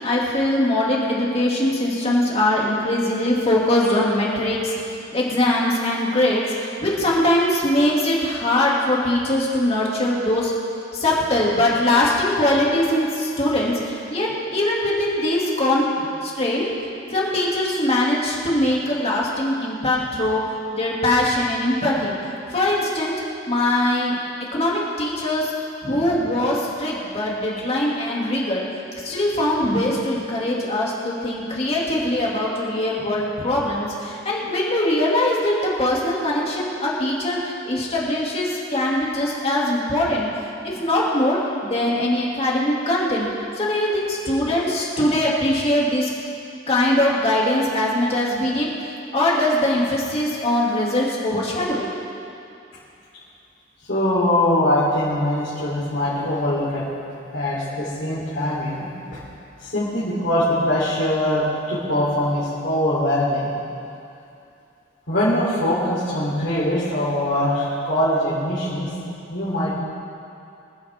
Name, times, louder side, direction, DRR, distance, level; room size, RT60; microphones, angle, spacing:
voice 1, 0.0-4.7 5.1-10.5 10.9-16.7 17.1-20.4 20.7-22.1 22.5-23.1 23.5-24.2 24.5-25.5 25.8-28.6 29.0-40.3 40.6-43.3 43.6-46.1 46.7-48.7 49.1-51.9, left 1 dB, 35° left, -4 dB, 2.6 m, -21 dB
voice 2, 53.9-56.9 57.3-58.9 59.6-63.5 65.1-68.9 69.3-69.7, left 1 dB, 65° left, -10 dB, 3.7 m, -22 dB
25.0 x 10.0 x 3.7 m, 2.6 s
head